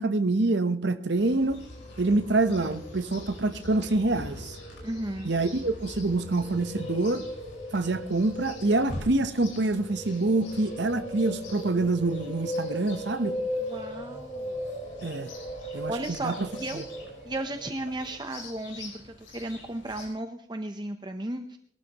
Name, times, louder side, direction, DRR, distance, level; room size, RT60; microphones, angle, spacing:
voice 1, 0.0-1.6 2.0-4.6 5.2-7.2 7.7-13.4 15.0-15.3 15.7-16.5 16.7-16.8, right 2 dB, 65° right, 0.9 m, -26 dB
Chirp tweet, 1.1-20.1, left 2 dB, 75° left, 4.9 m, -46 dB
sound 1, 1.2-18.2, equal, 35° left, 2.4 m, -39 dB
voice 2, 4.8-5.3 13.6-14.7 15.7-16.8 17.2-21.6, right 1 dB, 20° right, 0.7 m, -35 dB
22.0 x 12.5 x 3.0 m
head